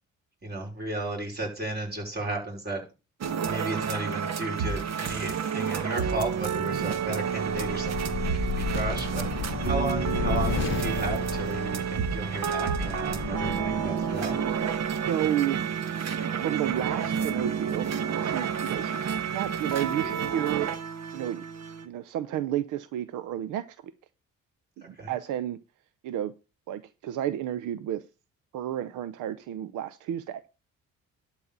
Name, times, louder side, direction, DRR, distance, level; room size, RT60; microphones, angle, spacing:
voice 1, 0.4-2.8 3.4-9.3 9.6-14.3 24.8-25.1, right 2 dB, 35° right, 1 dB, 5.1 m, -34 dB
sound 1, 3.2-21.9, right 7 dB, 60° right, 1.3 m, -30 dB
sound 2, 6.8-15.0, left 8 dB, 40° left, 0.8 m, -34 dB
voice 2, 15.1-15.7 16.4-17.9 18.2-20.7 21.1-21.4 21.8-23.9 24.9-25.6 26.0-26.3 26.7-28.0 28.5-30.4, right 11 dB, 90° right, 14 dB, 0.7 m, -31 dB
12.0 x 4.2 x 7.3 m, 0.31 s
cardioid pair, 90°, 30 cm